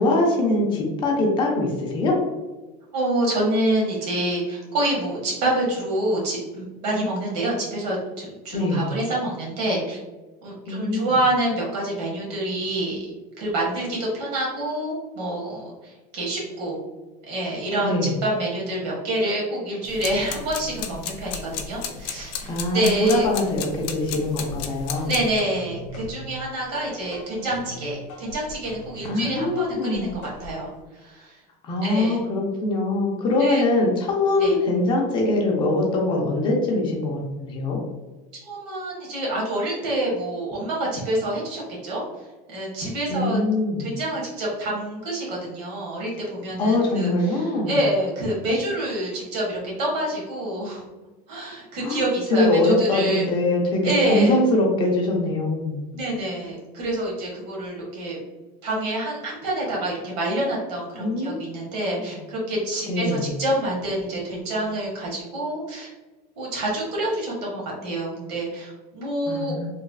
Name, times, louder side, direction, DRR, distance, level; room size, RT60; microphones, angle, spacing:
voice 1, 0.0-2.2 8.5-8.9 10.7-11.1 17.8-18.1 22.4-25.1 29.0-30.1 31.6-37.8 43.1-43.9 46.6-47.8 51.8-52.0 52.3-55.8 61.0-61.5 62.0-62.1 62.9-63.3 69.3-69.6, left 2 dB, 25° left, 0 dB, 0.4 m, -22 dB
voice 2, 2.9-10.0 10.4-16.8 17.3-23.3 25.0-31.4 31.8-32.2 33.4-33.6 34.4-34.6 38.4-42.0 42.5-43.4 43.8-50.9 51.3-53.3 53.8-54.4 55.9-58.2 58.6-65.9 66.4-69.7, right 1 dB, 85° right, -4 dB, 1.2 m, -27 dB
sound 1, 19.8-25.4, left 7 dB, 75° left, 0.5 m, -34 dB
sound 2, 24.4-30.7, equal, 55° left, 0.9 m, -41 dB
3.1 x 2.5 x 2.2 m, 1.2 s
supercardioid pair, 170°, 21 cm